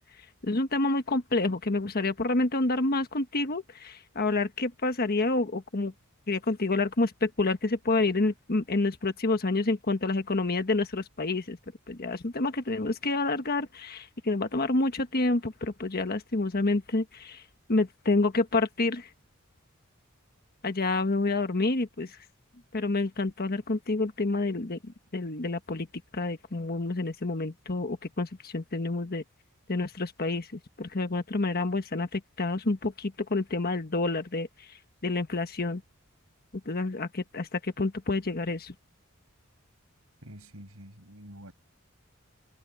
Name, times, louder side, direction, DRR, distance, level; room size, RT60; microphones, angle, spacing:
voice 1, 0.4-5.9 6.3-11.6 11.9-17.4 17.7-19.1 20.6-22.1 22.7-25.9 26.1-29.2 29.7-30.5 30.8-34.5 35.0-35.8 36.6-38.7, left 2 dB, 45° left, 1.4 m, -28 dB
voice 2, 40.2-41.5, right 1 dB, 80° right, 6.2 m, -47 dB
head